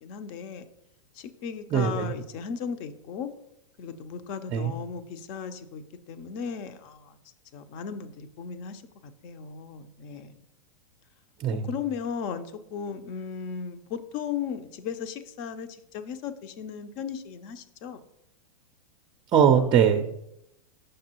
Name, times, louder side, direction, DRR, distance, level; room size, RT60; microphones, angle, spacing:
voice 1, 0.0-0.6 1.1-3.3 3.8-7.2 7.5-10.4 11.6-18.0, left 7 dB, 45° left, 11 dB, 0.7 m, -36 dB
voice 2, 1.7-2.1 4.5-4.7 11.4-11.7 19.3-20.1, right 8 dB, 25° right, 4 dB, 0.5 m, -21 dB
6.6 x 5.9 x 2.9 m, 0.80 s
hypercardioid pair, 115°, 18 cm